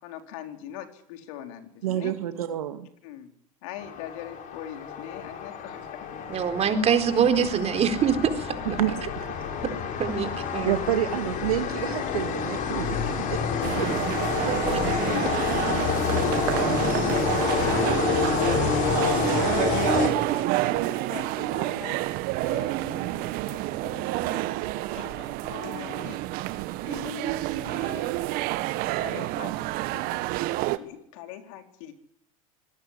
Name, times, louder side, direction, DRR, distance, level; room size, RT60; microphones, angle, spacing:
voice 1, 0.0-2.1 3.0-3.3 3.6-6.3 9.7-9.8 13.0-13.3 14.6-15.8 16.3-17.2 17.5-18.2 18.5-22.0 22.4-24.5 24.9-26.2 26.8-28.2 28.9-29.6 29.9-30.2 30.8-31.9, left 10 dB, 65° left, 6 dB, 4.0 m, -41 dB
voice 2, 1.8-2.9 8.8-9.0 10.6-13.4 13.8-13.9, right 12 dB, 80° right, 8 dB, 2.0 m, -28 dB
sound 1, 3.8-20.6, left 6 dB, 45° left, 5.2 m, -28 dB
voice 3, 6.3-8.8 9.7-10.8 14.7-14.8, right 7 dB, 35° right, 7 dB, 4.2 m, -25 dB
sound 2, 13.6-30.8, right 17 dB, 55° right, 1.7 m, -28 dB
25.0 x 19.0 x 9.8 m, 0.73 s
hypercardioid pair, 95°, 18 cm